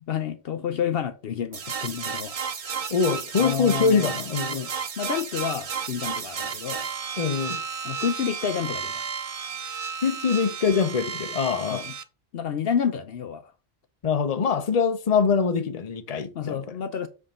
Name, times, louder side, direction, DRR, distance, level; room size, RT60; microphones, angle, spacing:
voice 1, 0.1-2.4 2.6-2.9 3.4-6.9 7.8-9.1 11.7-11.9 12.3-13.5 16.3-17.1, left 8 dB, 65° left, 0.8 m, -30 dB
sound 1, 1.5-12.0, right 6 dB, 40° right, 0.6 m, -33 dB
voice 2, 2.9-4.7 7.2-7.6 10.0-11.8 14.0-16.6, left 5 dB, 40° left, 0.8 m, -24 dB
7.7 x 3.6 x 5.5 m
omnidirectional pair, 1.1 m